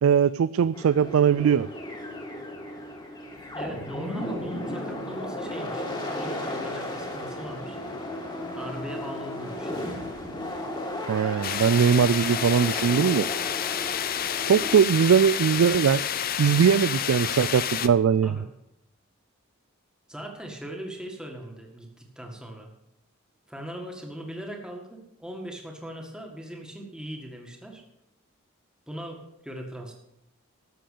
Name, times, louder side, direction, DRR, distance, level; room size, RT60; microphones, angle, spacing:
voice 1, 0.0-1.7 11.1-13.3 14.5-16.1 16.4-18.4, right 7 dB, 80° right, 16 dB, 0.3 m, -20 dB
sound 1, 0.7-14.8, left 1 dB, 20° left, 2.0 m, -35 dB
voice 2, 3.5-5.8 6.1-7.8 8.5-9.9 18.2-18.4 20.1-22.7 23.5-27.8 28.9-29.9, right 1 dB, 5° right, 1 dB, 1.9 m, -39 dB
sound 2, 11.4-17.9, left 9 dB, 45° left, 0.6 m, -29 dB
13.0 x 7.7 x 6.7 m, 0.84 s
head